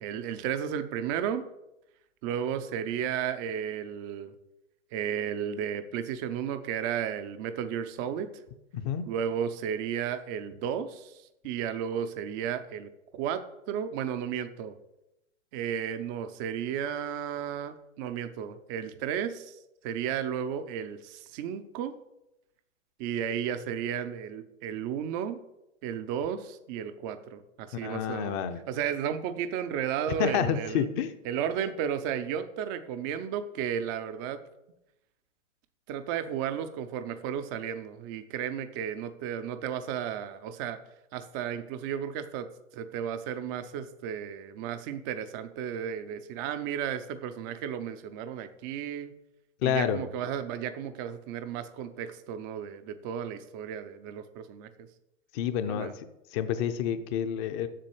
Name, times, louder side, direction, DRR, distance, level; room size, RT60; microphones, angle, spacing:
voice 1, 0.0-1.4 2.2-4.3 4.9-8.3 9.1-14.7 15.5-19.6 19.8-22.0 23.0-25.4 25.8-28.4 28.7-30.9 31.2-34.4 35.9-40.8 41.1-42.5 42.7-49.2 49.6-54.9 55.7-55.9, right 8 dB, 15° right, 10 dB, 0.4 m, -33 dB
voice 2, 8.7-9.1 27.8-28.6 30.2-31.1 49.6-50.0 55.3-56.0 56.3-57.7, left 9 dB, 25° left, 11 dB, 0.6 m, -29 dB
7.6 x 6.6 x 8.0 m, 0.89 s
hypercardioid pair, 135°, 38 cm